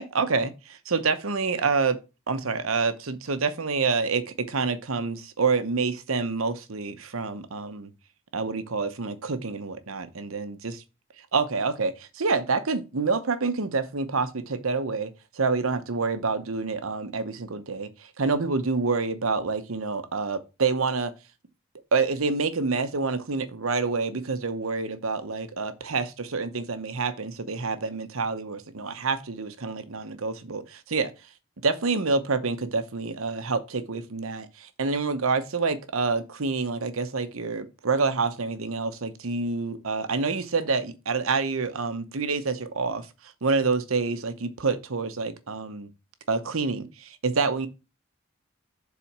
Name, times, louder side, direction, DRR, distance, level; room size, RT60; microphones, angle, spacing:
voice 1, 0.0-2.0 2.3-7.9 8.3-10.8 11.3-21.1 21.9-31.1 31.6-43.1 43.4-45.9 46.3-47.7, right 4 dB, 80° right, 0.9 m, -27 dB
7.2 x 4.1 x 6.0 m
head